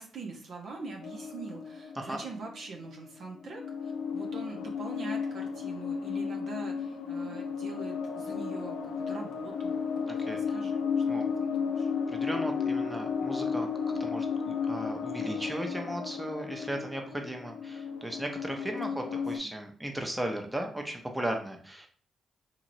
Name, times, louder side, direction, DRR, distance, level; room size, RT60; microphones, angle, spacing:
voice 1, 0.0-10.0 10.3-10.8 11.4-11.9 18.9-19.3, right 3 dB, 65° right, 1 dB, 0.6 m, -44 dB
sound 1, 1.0-2.9 3.4-19.4, left 5 dB, 75° left, 0.4 m, -33 dB
voice 2, 10.1-10.4 11.1-11.2 12.1-13.7 14.0-21.9, right 1 dB, 10° right, 3 dB, 0.7 m, -36 dB
2.8 x 2.8 x 2.6 m, 0.43 s
hypercardioid pair, 45°, 0 cm